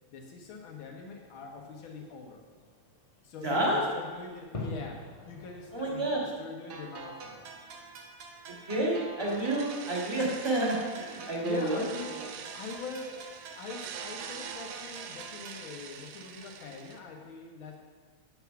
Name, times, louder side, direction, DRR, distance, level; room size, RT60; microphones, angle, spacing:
voice 1, 0.1-2.4 3.2-7.4 11.2-12.2 12.5-13.3 13.6-17.8, left 4 dB, 75° left, 1 dB, 1.1 m, -43 dB
Fireworks, 0.9-6.2, left 2 dB, 45° left, 0.4 m, -46 dB
voice 2, 3.4-3.8 5.7-6.2 8.7-11.8, right 1 dB, 15° right, -3 dB, 1.0 m, -29 dB
sound 1, 6.7-15.7, right 4 dB, 65° right, 1.6 m, -46 dB
sound 2, 9.3-17.0, right 8 dB, 85° right, 1.4 m, -45 dB
8.2 x 7.9 x 5.8 m, 1.5 s
omnidirectional pair, 3.7 m